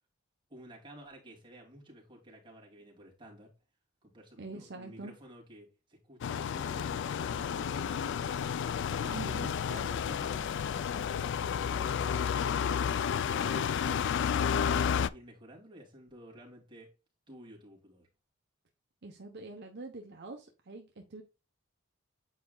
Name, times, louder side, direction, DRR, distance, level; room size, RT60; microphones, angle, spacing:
voice 1, 0.5-3.5 4.0-8.7 9.0-10.5 10.9-16.9 17.3-18.1, equal, 25° right, 2.6 m, -52 dB
voice 2, 4.4-5.1 9.1-9.5 19.0-21.2, right 3 dB, 55° right, 0.8 m, -44 dB
sound 1, 6.2-15.1, left 7 dB, 60° left, 0.3 m, -31 dB
8.6 x 4.8 x 2.3 m
head